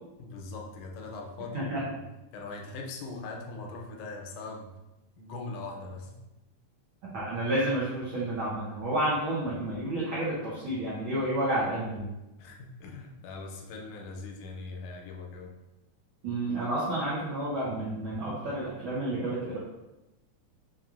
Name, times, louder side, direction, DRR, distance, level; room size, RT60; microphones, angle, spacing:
voice 1, 0.2-1.9 2.3-4.7 5.2-6.1 12.4-15.5, left 3 dB, 85° left, 1 dB, 1.9 m, -41 dB
voice 2, 7.0-12.1 16.2-19.6, right 1 dB, 85° right, -7 dB, 1.1 m, -30 dB
5.0 x 3.0 x 2.4 m, 1.0 s
omnidirectional pair, 3.4 m